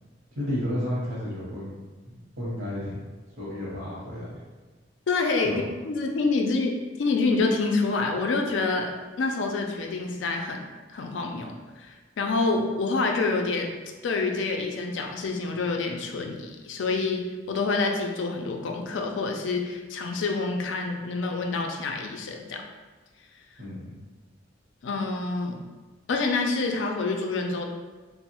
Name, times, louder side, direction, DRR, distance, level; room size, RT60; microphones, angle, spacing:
voice 1, 0.3-1.8 2.0-3.0 3.4-4.4 5.4-5.6 23.6-24.0, equal, 65° right, -8 dB, 0.8 m, -32 dB
voice 2, 5.1-8.9 9.2-13.7 14.0-22.6 24.8-25.6 26.1-27.7, left 3 dB, 70° left, 3 dB, 0.4 m, -27 dB
3.0 x 2.0 x 2.9 m, 1.3 s
head